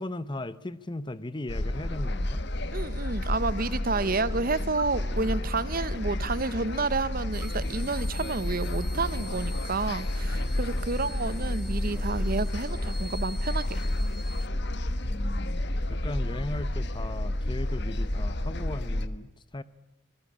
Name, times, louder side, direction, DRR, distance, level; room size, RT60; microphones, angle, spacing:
voice 1, 0.0-2.4 15.0-15.6 15.9-19.6, left 1 dB, 25° left, 0.9 m, -37 dB
sound 1, 1.5-19.1, left 1 dB, 55° left, 1.4 m, -30 dB
voice 2, 2.7-13.8, right 3 dB, 45° right, 0.9 m, -30 dB
sound 2, 3.9-12.9, right 1 dB, 15° right, 1.4 m, -48 dB
sound 3, 7.3-14.5, equal, ahead, 1.0 m, -47 dB
25.5 x 21.5 x 8.7 m
head